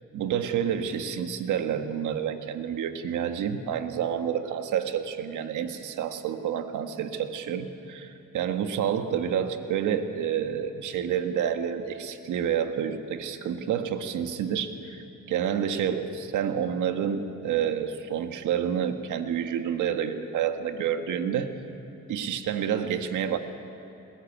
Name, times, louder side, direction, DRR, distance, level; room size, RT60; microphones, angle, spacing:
voice 1, 0.1-21.5 22.1-23.4, right 8 dB, 80° right, 7 dB, 1.6 m, -29 dB
21.0 x 20.0 x 10.0 m, 3.0 s
cardioid pair, 90°, 30 cm